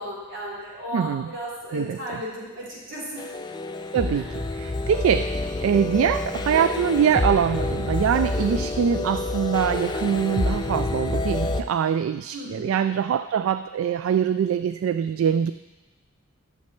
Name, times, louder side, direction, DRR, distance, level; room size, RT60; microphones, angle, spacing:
voice 1, 0.0-3.3 4.1-4.3 8.2-8.5 12.3-12.7, equal, 60° right, -6 dB, 3.9 m, -35 dB
voice 2, 0.9-1.3 1.7-2.0 3.9-4.2 4.6-15.5, right 8 dB, 75° right, 11 dB, 0.3 m, -23 dB
sound 1, 3.2-11.6, left 2 dB, 20° left, 0.4 m, -28 dB
11.5 x 7.2 x 4.5 m, 1.2 s
head